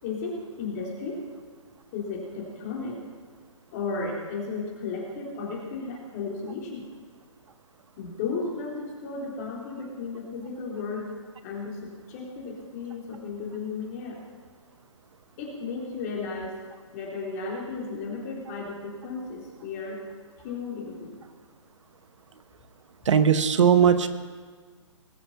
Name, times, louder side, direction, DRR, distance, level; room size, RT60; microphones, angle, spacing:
voice 1, 0.0-1.2 1.9-3.0 3.7-6.8 8.0-11.1 11.4-14.2 15.4-16.5 16.9-20.0 20.4-21.2, left 4 dB, 35° left, -2 dB, 3.8 m, -34 dB
voice 2, 23.1-24.1, right 8 dB, 70° right, 11 dB, 1.0 m, -19 dB
20.0 x 8.0 x 5.8 m, 1.5 s
hypercardioid pair, 150°, 16 cm